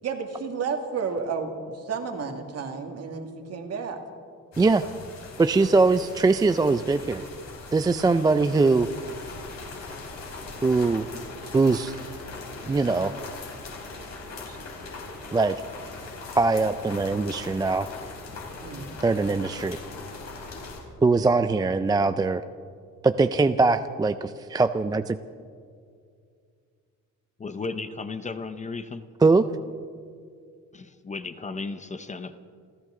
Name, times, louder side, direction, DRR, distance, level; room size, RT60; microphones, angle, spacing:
voice 1, 0.0-4.0 18.6-18.8, right 5 dB, 55° right, 5 dB, 1.9 m, -31 dB
sound 1, 4.5-20.8, left 3 dB, 55° left, 4.5 m, -40 dB
voice 2, 5.4-7.2 7.7-8.9 10.6-11.1 11.5-12.0 12.7-13.1 14.5-14.6 15.3-15.5 16.3-17.9 19.0-19.8 21.0-22.4 23.0-25.2 29.2-29.4, right 3 dB, 15° right, 10 dB, 0.3 m, -21 dB
voice 3, 27.4-29.1 30.7-32.4, left 4 dB, 25° left, 10 dB, 0.7 m, -35 dB
28.5 x 13.5 x 3.7 m, 2.2 s
cardioid pair, 135°, 31 cm